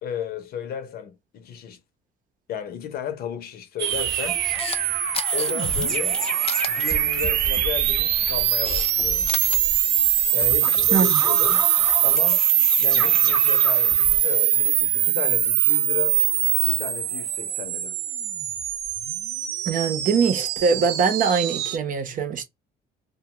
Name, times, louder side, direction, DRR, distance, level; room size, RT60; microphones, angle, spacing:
voice 1, 0.0-1.8 2.5-4.4 5.3-6.2 6.7-9.4 10.3-11.7 12.0-12.5 12.8-16.2 16.6-18.0, left 9 dB, 65° left, 0.7 m, -34 dB
sound 1, 3.8-21.8, right 11 dB, 85° right, 0.5 m, -22 dB
sound 2, 3.9-14.2, right 1 dB, 5° left, 0.9 m, -32 dB
Camera, 4.3-4.8 5.1-5.5 6.4-6.7 8.0-8.9 9.2-9.6, left 7 dB, 35° left, 0.4 m, -32 dB
voice 2, 19.7-22.4, right 5 dB, 50° right, 0.8 m, -22 dB
2.4 x 2.3 x 2.9 m
cardioid pair, 110°, 17 cm